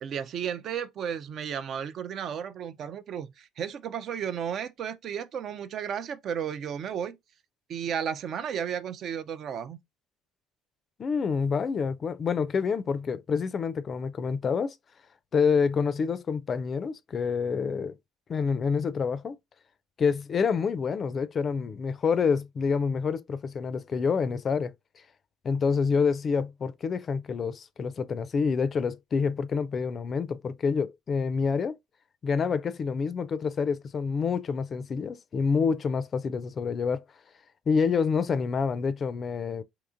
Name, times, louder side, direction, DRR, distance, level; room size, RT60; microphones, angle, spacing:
voice 1, 0.0-7.2 7.7-9.8, right 8 dB, 55° right, 0.4 m, -33 dB
voice 2, 11.0-14.8 15.3-18.0 18.3-19.4 20.0-24.7 25.4-31.8 32.2-37.0 37.7-39.6, left 5 dB, 40° left, 0.4 m, -27 dB
3.6 x 2.8 x 2.4 m
supercardioid pair, 75°, 0 cm